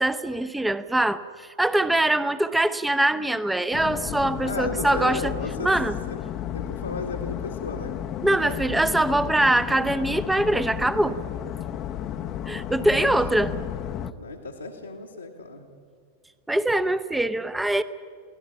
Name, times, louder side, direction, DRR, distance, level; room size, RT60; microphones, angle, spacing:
voice 1, 0.0-5.3 5.6-6.0 8.2-11.2 12.5-13.6 16.5-17.8, right 1 dB, 5° right, 13 dB, 0.8 m, -23 dB
sound 1, 3.7-14.1, left 10 dB, 35° left, 0.8 m, -33 dB
voice 2, 4.4-5.7 6.1-6.2 6.5-8.6 12.2-12.3 12.8-13.5 14.2-15.7, left 3 dB, 85° left, -3 dB, 1.8 m, -35 dB
23.5 x 17.0 x 7.2 m, 2.1 s
figure-of-eight pair, 90°, 0 cm